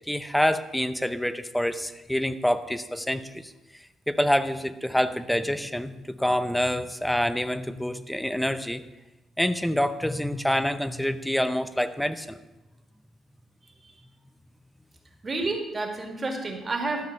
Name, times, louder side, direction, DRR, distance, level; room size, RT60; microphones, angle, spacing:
voice 1, 0.1-3.5 4.1-8.8 9.4-12.4, equal, 5° left, 12 dB, 0.7 m, -26 dB
voice 2, 15.2-17.1, right 2 dB, 30° right, 2 dB, 2.2 m, -30 dB
12.5 x 5.0 x 6.7 m, 1.1 s
cardioid pair, 90°, 0 cm